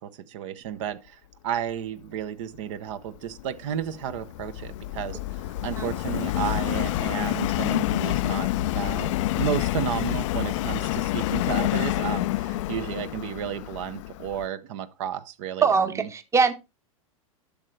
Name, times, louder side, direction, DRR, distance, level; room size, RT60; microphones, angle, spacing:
voice 1, 0.0-15.7 16.0-16.1, right 9 dB, 60° right, 0.9 m, -33 dB
Subway metro underground, 3.2-14.5, left 16 dB, 60° left, 0.4 m, -28 dB
voice 2, 15.6-16.5, right 5 dB, 15° right, 0.9 m, -22 dB
12.0 x 6.6 x 3.3 m
hypercardioid pair, 105°, 18 cm